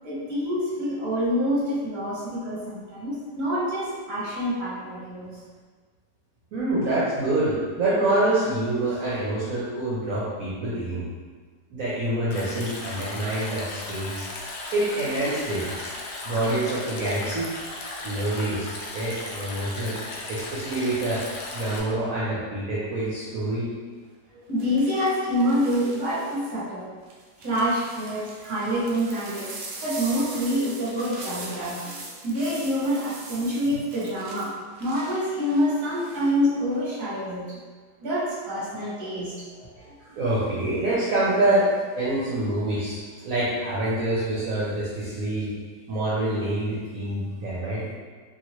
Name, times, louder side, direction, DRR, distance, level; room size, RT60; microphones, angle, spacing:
voice 1, 0.0-5.4 24.3-26.9 27.4-29.5 29.8-34.5 34.8-37.6 38.0-39.9, equal, 35° right, -9 dB, 0.9 m, -27 dB
voice 2, 6.5-11.1 11.7-14.3 14.7-15.7 16.2-17.5 18.0-20.0 20.3-21.2 21.5-23.7 31.2-31.5 32.2-32.5 33.7-33.8 40.0-43.0 43.2-45.5 45.9-47.9, right 1 dB, 65° right, -8 dB, 0.9 m, -26 dB
Stream, 12.3-21.8, left 2 dB, 75° left, 1.1 m, -36 dB
sound 1, 23.0-23.3 24.6-26.5 27.1-36.3 36.7-37.2, right 2 dB, 90° right, 0.6 m, -42 dB
2.8 x 2.8 x 2.9 m, 1.5 s
omnidirectional pair, 1.9 m